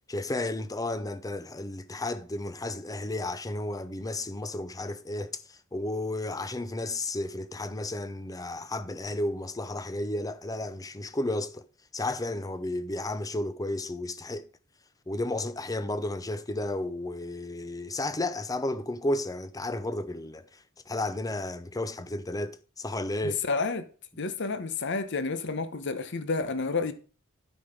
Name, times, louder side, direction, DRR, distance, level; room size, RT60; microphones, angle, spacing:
voice 1, 0.1-11.6 11.9-14.5 15.1-23.4, left 2 dB, 15° left, 0.6 m, -33 dB
voice 2, 23.2-23.9 24.2-26.9, left 4 dB, 55° left, 1.0 m, -30 dB
9.1 x 6.2 x 5.1 m
head